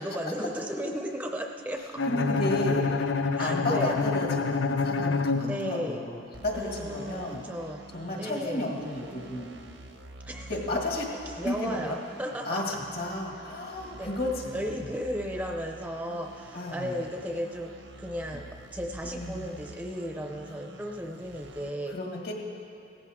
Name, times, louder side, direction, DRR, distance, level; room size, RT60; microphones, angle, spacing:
voice 1, 0.0-1.8 3.4-3.9 5.4-6.0 6.5-7.8 8.1-8.7 10.3-10.6 11.4-12.8 14.0-14.1 14.5-17.7 18.0-22.0, equal, 10° right, 2 dB, 0.6 m, -35 dB
Bowed string instrument, 2.0-6.1, left 4 dB, 85° left, 0.5 m, -27 dB
voice 2, 2.1-7.4 7.9-9.6 10.5-11.0 11.4-11.8 12.4-14.9 16.5-17.0 19.0-19.5 21.9-22.3, left 1 dB, 55° left, 0 dB, 2.0 m, -32 dB
sound 1, 6.3-21.7, right 1 dB, 90° right, 1.1 m, -47 dB
17.0 x 14.0 x 3.7 m, 2.5 s
head